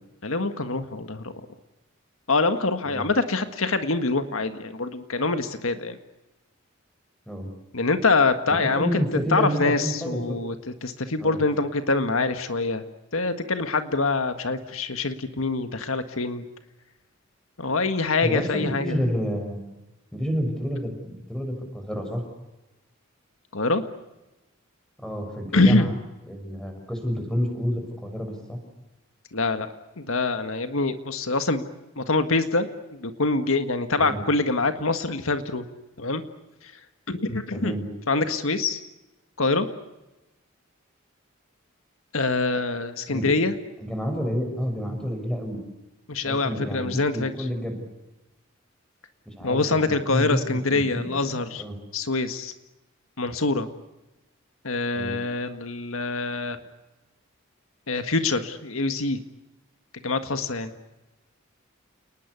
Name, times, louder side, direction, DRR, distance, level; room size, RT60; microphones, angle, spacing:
voice 1, 0.2-1.4 2.3-6.0 7.7-8.9 9.3-10.5 10.8-12.8 13.1-16.5 17.6-19.0 23.5-23.8 25.5-25.9 29.3-29.7 30.0-31.6 32.0-32.7 33.0-35.7 36.0-36.2 36.6-36.7 37.1-37.7 38.1-38.8 39.4-39.7 42.1-43.5 46.1-47.3 49.4-51.6 51.9-52.5 53.2-53.7 54.6-56.6 57.9-59.2 60.0-60.7, left 3 dB, 80° left, 8 dB, 1.7 m, -25 dB
voice 2, 8.5-10.4 11.2-11.4 18.2-19.6 20.1-22.2 25.0-25.9 26.3-28.6 34.0-34.2 37.5-37.9 43.1-43.3 43.8-45.6 46.2-47.8 49.3-50.4 50.7-51.8 54.9-55.2, equal, 5° left, 5 dB, 6.2 m, -29 dB
30.0 x 20.0 x 8.3 m, 1.0 s
head